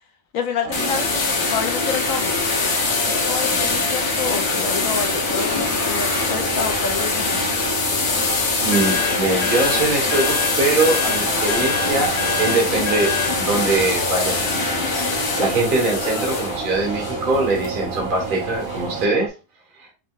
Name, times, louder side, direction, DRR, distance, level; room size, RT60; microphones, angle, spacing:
voice 1, 0.3-2.4 2.9-7.5, left 6 dB, 70° left, 5 dB, 1.2 m, -28 dB
sound 1, 0.6-19.3, right 6 dB, 80° right, 1.1 m, -31 dB
sound 2, 0.7-19.0, left 4 dB, 85° left, 1.6 m, -23 dB
voice 2, 8.6-14.9 15.4-19.3 19.8-19.9, right 3 dB, 35° right, 0 dB, 1.4 m, -22 dB
sound 3, 8.7-13.4, left 6 dB, 35° left, 0.4 m, -27 dB
5.3 x 2.2 x 3.8 m, 0.31 s
omnidirectional pair, 1.6 m